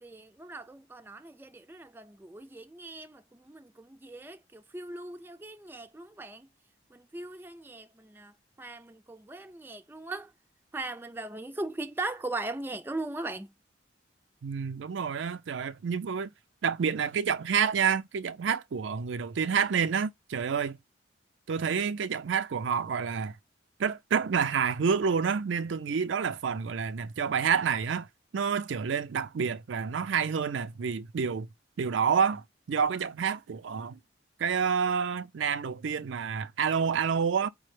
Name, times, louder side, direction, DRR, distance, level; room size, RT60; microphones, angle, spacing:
voice 1, 0.0-6.5 6.9-10.3 10.7-13.5, right 2 dB, 10° right, 0.4 m, -39 dB
voice 2, 14.4-16.3 16.6-20.8 21.5-23.3 23.8-28.1 28.3-31.5 31.8-34.0 34.4-37.5, right 6 dB, 85° right, 0.4 m, -28 dB
5.0 x 2.0 x 3.2 m
head